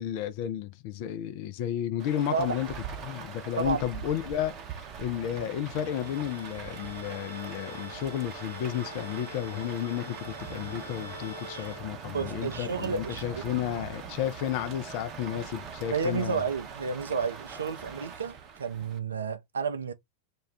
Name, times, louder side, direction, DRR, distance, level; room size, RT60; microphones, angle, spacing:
voice 1, 0.0-2.7 3.0-16.4, left 11 dB, 45° left, 0.3 m, -32 dB
Rain, 2.0-19.0, right 6 dB, 35° right, 0.6 m, -42 dB
Bowed string instrument, 5.6-12.4, equal, 80° left, 0.9 m, -46 dB
voice 2, 12.1-13.2 15.9-19.9, right 5 dB, 70° right, 0.4 m, -31 dB
2.2 x 2.2 x 3.4 m
figure-of-eight pair, 90°, 0 cm